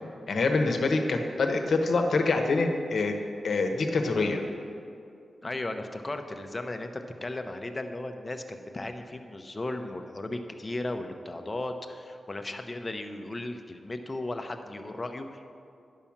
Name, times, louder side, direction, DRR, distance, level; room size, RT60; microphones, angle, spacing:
voice 1, 0.3-3.2 3.4-4.4, left 3 dB, 70° left, 4 dB, 1.0 m, -25 dB
voice 2, 5.4-15.4, left 2 dB, 25° left, 6 dB, 0.7 m, -36 dB
10.5 x 5.6 x 7.2 m, 2.5 s
wide cardioid pair, 120°, 0 cm